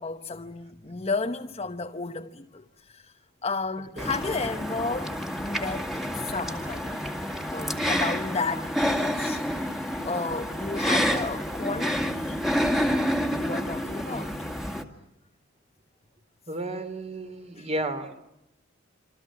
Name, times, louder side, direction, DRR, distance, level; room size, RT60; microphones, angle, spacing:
voice 1, 0.0-3.1 3.4-7.0 7.5-9.7 10.0-12.5 13.3-14.3 17.6-17.7, left 3 dB, 30° left, 1.0 m, -33 dB
sound 1, 4.0-14.8, equal, ahead, 2.2 m, -28 dB
voice 2, 16.5-18.2, right 1 dB, 35° right, 3.1 m, -33 dB
27.5 x 25.5 x 7.4 m
head